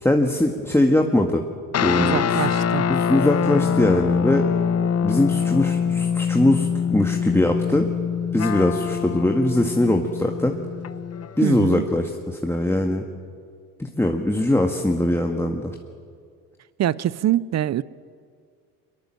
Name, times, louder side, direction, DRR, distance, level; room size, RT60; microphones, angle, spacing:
voice 1, 0.0-1.5 1.8-2.4 2.9-4.5 5.0-7.9 8.3-10.6 11.4-13.0 13.8-15.7, left 1 dB, 5° left, 1.8 m, -21 dB
sound 1, 1.7-11.4, left 7 dB, 30° left, 1.0 m, -24 dB
voice 2, 2.0-2.9 11.4-11.8 16.8-17.8, right 12 dB, 35° right, 0.7 m, -24 dB
24.5 x 22.5 x 7.7 m
hypercardioid pair, 70°, 46 cm